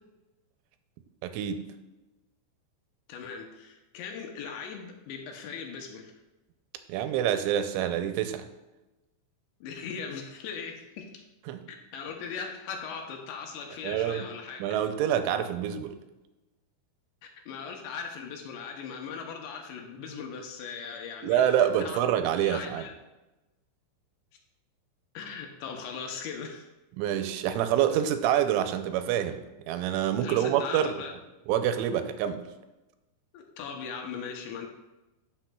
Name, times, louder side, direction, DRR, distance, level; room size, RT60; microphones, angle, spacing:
voice 1, 1.2-1.6 6.9-8.5 11.5-11.6 13.8-14.3 14.6-16.0 21.2-22.8 27.0-29.4 29.7-30.9 31.5-32.4, right 10 dB, 85° right, 8 dB, 3.0 m, -26 dB
voice 2, 3.1-6.1 9.6-11.1 11.7-14.6 17.2-22.0 22.4-23.0 25.1-26.7 30.2-31.1 33.3-34.7, left 6 dB, 80° left, 3 dB, 2.8 m, -39 dB
13.0 x 6.0 x 2.3 m, 1.0 s
omnidirectional pair, 5.4 m